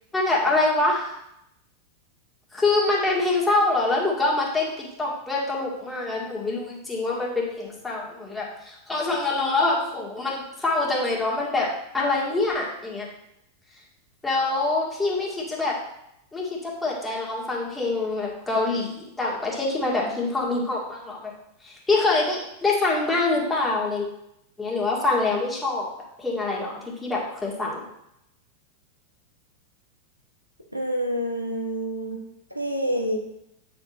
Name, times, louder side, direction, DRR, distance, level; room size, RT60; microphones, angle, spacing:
voice 1, 0.1-1.1 2.5-11.7 11.9-13.1 14.2-15.7 16.3-21.3 21.6-24.1 24.6-25.9 26.2-26.7 27.0-27.8, left 2 dB, 10° left, -4 dB, 2.0 m, -25 dB
voice 2, 30.7-32.2 32.5-33.2, equal, 85° right, 1 dB, 1.0 m, -27 dB
9.1 x 4.4 x 4.1 m, 0.81 s
figure-of-eight pair, 90°, 0 cm